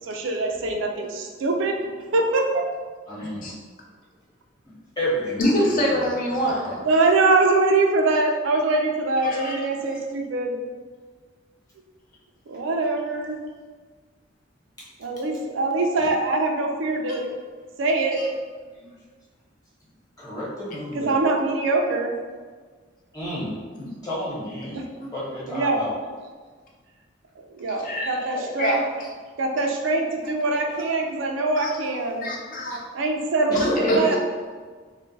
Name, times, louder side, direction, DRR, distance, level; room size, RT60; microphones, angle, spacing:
voice 1, 0.0-1.8 2.1-2.6 6.8-10.6 12.5-13.4 15.0-17.3 17.8-18.2 20.9-22.1 24.7-24.8 25.5-25.8 27.4-28.8 29.4-32.3 32.9-34.2, right 3 dB, 75° right, 2 dB, 0.4 m, -23 dB
voice 2, 3.1-3.5 4.6-6.8 14.8-14.9 16.0-16.1 18.7-18.9 20.2-21.4 23.1-23.6 24.0-24.8 25.1-25.9 33.5-33.7, equal, 20° left, -8 dB, 1.0 m, -32 dB
voice 3, 5.4-6.7 9.2-9.6 17.1-17.2 18.2-18.3 27.8-29.1 31.6-31.7 32.2-32.8 33.5-34.2, equal, 45° left, -2 dB, 0.5 m, -25 dB
2.4 x 2.2 x 3.8 m, 1.5 s
head